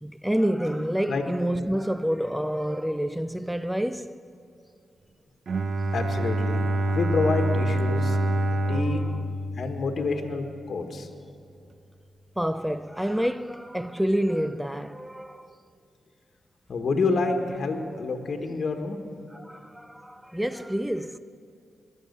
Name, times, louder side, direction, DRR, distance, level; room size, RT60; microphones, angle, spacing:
voice 1, 0.0-4.2 6.7-7.1 8.0-8.3 8.6-9.2 12.4-15.5 19.3-21.2, equal, 5° right, 0.4 m, -28 dB
Bowed string instrument, 5.5-10.4, right 1 dB, 65° right, 0.6 m, -26 dB
voice 2, 5.9-6.6 6.9-8.2 8.7-9.0 9.6-11.1 16.7-19.0, left 3 dB, 60° left, 1.4 m, -28 dB
20.0 x 7.6 x 6.7 m
cardioid pair, 75°, 0 cm